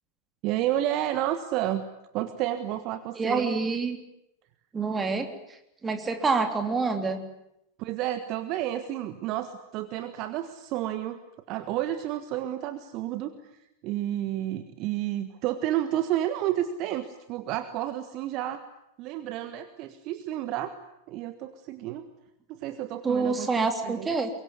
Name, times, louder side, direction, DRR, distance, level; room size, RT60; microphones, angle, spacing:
voice 1, 0.4-1.8 2.1-3.5 7.8-11.2 11.5-18.6 19.0-20.8 21.1-22.1 22.5-24.2, right 12 dB, 40° right, 10 dB, 1.5 m, -31 dB
voice 2, 3.1-4.0 4.7-7.2 23.0-24.3, right 4 dB, 15° right, 6 dB, 3.3 m, -27 dB
23.5 x 23.5 x 9.6 m, 0.82 s
figure-of-eight pair, 90°, 0 cm